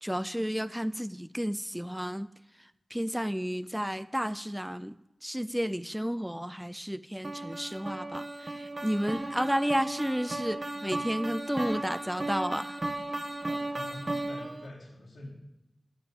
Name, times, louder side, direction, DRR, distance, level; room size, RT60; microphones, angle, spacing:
voice 1, 0.0-2.3 2.6-5.0 5.2-12.8, equal, 5° right, 15 dB, 0.4 m, -32 dB
sound 1, 7.2-14.7, right 2 dB, 35° right, 1.7 m, -35 dB
voice 2, 13.4-15.3, left 1 dB, 75° left, -1 dB, 3.7 m, -45 dB
13.5 x 5.9 x 8.4 m, 0.97 s
wide cardioid pair, 90°, 0 cm